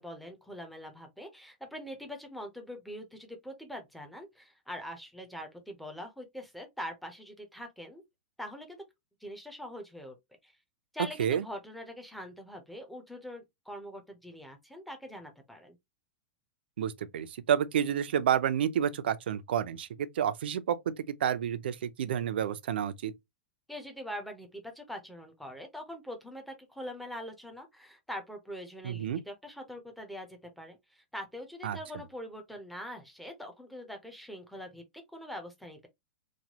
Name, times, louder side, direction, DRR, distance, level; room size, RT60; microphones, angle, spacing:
voice 1, 0.0-8.0 8.4-8.8 9.2-10.2 10.4-10.5 10.9-15.8 23.7-34.8 35.1-35.9, equal, ahead, 0.5 m, -43 dB
voice 2, 16.8-23.1 28.8-29.2 31.6-31.8, right 9 dB, 90° right, 0.5 m, -30 dB
3.0 x 2.2 x 2.8 m
supercardioid pair, 175°, 5 cm